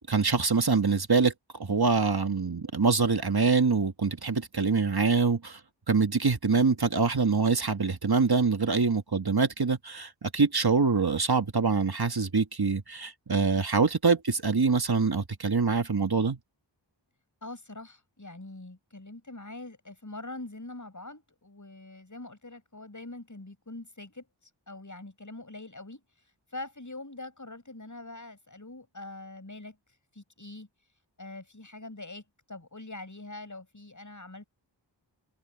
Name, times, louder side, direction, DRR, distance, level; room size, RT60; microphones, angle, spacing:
voice 1, 0.1-1.3 1.6-5.6 5.9-16.4, right 4 dB, 55° right, 1.7 m, -25 dB
voice 2, 17.4-24.3 24.7-26.0 26.5-29.8 30.1-30.7 31.2-32.2 32.5-34.4, left 2 dB, 40° left, 6.9 m, -43 dB
open air
wide cardioid pair, 50°, 44 cm